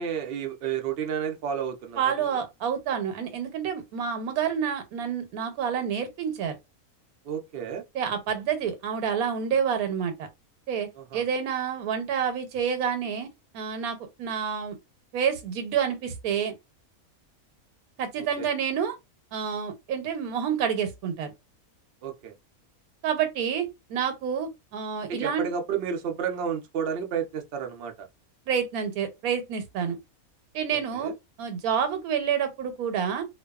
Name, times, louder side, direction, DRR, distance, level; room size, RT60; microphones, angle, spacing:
voice 1, 0.0-2.4 7.2-7.8 11.0-11.2 18.2-18.5 22.0-22.3 25.1-28.1 30.7-31.1, right 7 dB, 60° right, 0.6 m, -31 dB
voice 2, 2.0-6.6 7.9-10.3 10.7-14.8 15.1-16.5 18.0-18.9 19.3-21.3 23.0-25.5 28.5-30.0 30.5-31.1 31.4-33.3, right 7 dB, 85° right, 1.1 m, -28 dB
2.5 x 2.2 x 2.3 m
omnidirectional pair, 1.5 m